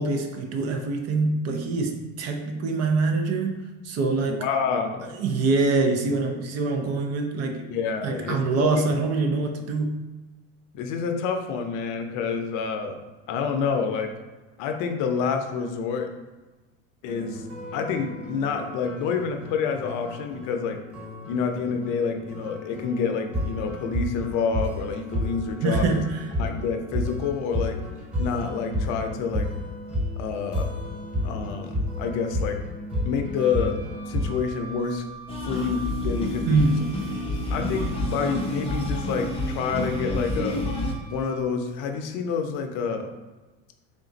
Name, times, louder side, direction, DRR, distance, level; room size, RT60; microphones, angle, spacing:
voice 1, 0.0-4.5 5.1-7.7 8.0-10.0 25.6-26.4 36.4-36.8, right 3 dB, 45° right, 4 dB, 0.6 m, -25 dB
voice 2, 4.3-5.1 7.7-8.8 10.7-13.0 13.3-14.1 14.6-16.1 17.0-17.4 17.7-20.8 21.3-26.0 26.4-27.8 28.2-29.5 30.2-30.7 31.2-32.6 33.0-33.8 34.1-35.0 35.4-36.6 37.5-40.6 41.1-43.1, left 5 dB, 60° left, 5 dB, 0.6 m, -28 dB
sound 1, 17.0-34.4, left 1 dB, 5° right, 1.3 m, -32 dB
Wind instrument woodwind instrument, 33.3-41.7, right 4 dB, 65° right, 1.3 m, -45 dB
sound 2, 35.3-40.9, left 1 dB, 15° left, 0.6 m, -29 dB
3.6 x 2.5 x 3.9 m, 1.2 s
supercardioid pair, 120°, 34 cm